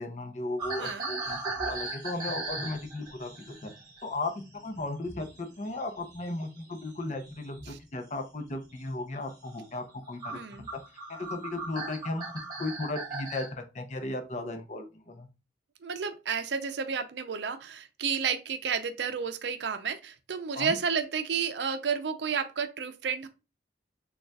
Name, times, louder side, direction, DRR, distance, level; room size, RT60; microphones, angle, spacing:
voice 1, 0.0-3.3 3.6-3.7 4.0-4.3 4.6-10.4 11.1-12.2 12.6-15.3 20.6-20.7, left 2 dB, 40° left, 0.6 m, -35 dB
sound 1, 0.6-5.4 5.7-7.8 8.3-8.7 9.1-9.3 9.9-10.0 10.2-13.5, right 3 dB, 20° right, 1.3 m, -38 dB
voice 2, 0.8-1.1 7.6-7.8 10.3-10.7 15.8-23.3, right 6 dB, 70° right, 0.5 m, -31 dB
6.5 x 2.4 x 2.3 m
head